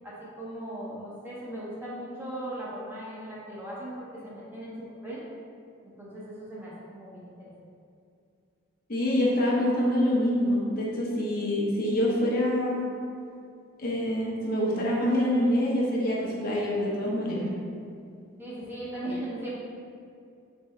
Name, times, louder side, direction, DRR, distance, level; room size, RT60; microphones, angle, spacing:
voice 1, 0.0-4.7 5.0-5.2 5.8-7.5 18.4-19.5, right 1 dB, 10° right, -7 dB, 0.7 m, -38 dB
voice 2, 8.9-12.9 13.8-17.5, left 1 dB, 45° left, -4 dB, 0.8 m, -26 dB
3.5 x 3.2 x 4.4 m, 2.4 s
head